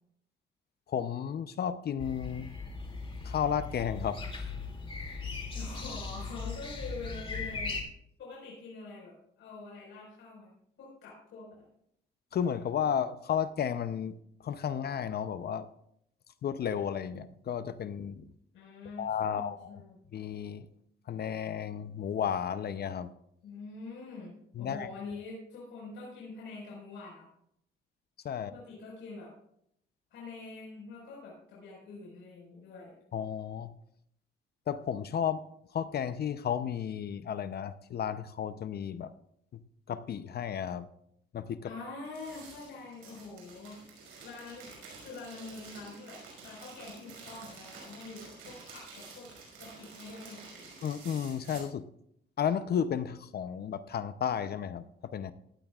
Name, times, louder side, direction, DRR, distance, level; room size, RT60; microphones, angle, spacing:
voice 1, 0.9-2.5 3.2-4.2 12.3-14.2 14.4-15.7 16.4-18.3 19.0-19.8 20.1-20.7 21.1-23.1 24.6-24.9 28.2-28.5 33.1-33.7 34.7-35.5 35.7-39.1 39.5-39.6 39.9-40.9 41.3-41.7 50.8-51.8 52.4-55.3, left 8 dB, 55° left, 12 dB, 0.7 m, -33 dB
sound 1, 2.0-7.8, left 4 dB, 25° left, 2.5 m, -38 dB
voice 2, 5.5-7.8 8.2-10.5 10.8-11.7 18.5-20.0 23.4-27.3 28.3-29.3 30.1-32.9 41.6-43.8 44.2-44.7 45.0-49.3 49.6-50.7, left 3 dB, 75° left, -5 dB, 4.9 m, -45 dB
sound 2, 42.0-51.6, right 4 dB, 85° right, 5.6 m, -50 dB
17.0 x 12.5 x 2.4 m, 0.73 s
cardioid pair, 90°, 20 cm